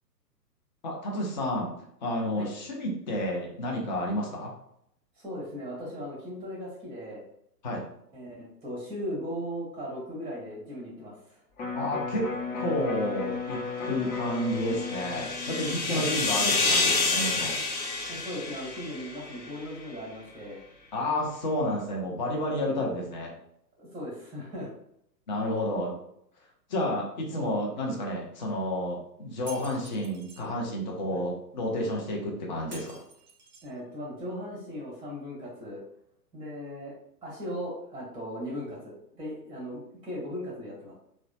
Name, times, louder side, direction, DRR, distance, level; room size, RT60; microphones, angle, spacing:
voice 1, 0.8-1.7 2.0-4.5 7.6-7.8 11.7-12.3 12.6-17.6 20.9-23.3 25.3-26.0 26.7-33.0, left 1 dB, 30° left, -1 dB, 0.4 m, -30 dB
voice 2, 5.2-7.2 8.1-11.4 15.9-16.1 18.1-20.6 23.8-24.7 27.3-27.5 31.1-31.2 33.6-35.8 36.3-36.9 37.2-40.9, equal, 10° right, -5 dB, 0.8 m, -38 dB
Electric guitar, 11.6-17.8 18.2-18.3, left 4 dB, 50° left, 0.8 m, -36 dB
sound 1, 13.9-19.5, left 3 dB, 90° left, 0.7 m, -29 dB
Shatter, 29.5-30.5 32.7-33.8, right 3 dB, 30° right, 0.5 m, -48 dB
2.9 x 2.1 x 2.5 m, 0.74 s
figure-of-eight pair, 125°, 50 cm